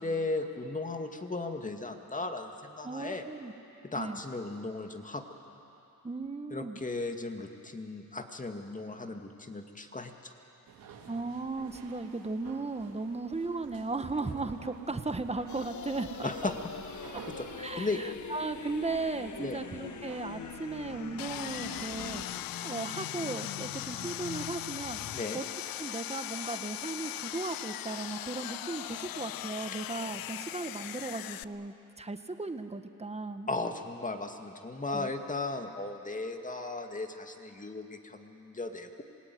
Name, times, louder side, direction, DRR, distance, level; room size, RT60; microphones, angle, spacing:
voice 1, 0.0-3.2 3.8-5.2 6.5-10.3 16.2-16.5 16.9-18.0 19.4-19.6 25.1-25.4 33.5-39.0, left 3 dB, 20° left, 5 dB, 2.2 m, -36 dB
voice 2, 2.8-3.5 3.9-4.2 6.0-6.8 11.1-16.5 17.1-17.2 17.6-25.4 25.8-33.5 34.9-35.1, right 3 dB, 15° right, 8 dB, 1.5 m, -36 dB
sound 1, 10.6-22.2, right 6 dB, 70° right, 3.1 m, -50 dB
sound 2, 15.5-25.2, left 8 dB, 55° left, 1.0 m, -43 dB
Sawing, 21.2-31.4, left 14 dB, 70° left, 0.6 m, -39 dB
27.0 x 18.0 x 9.5 m, 2.9 s
cardioid pair, 75°, 36 cm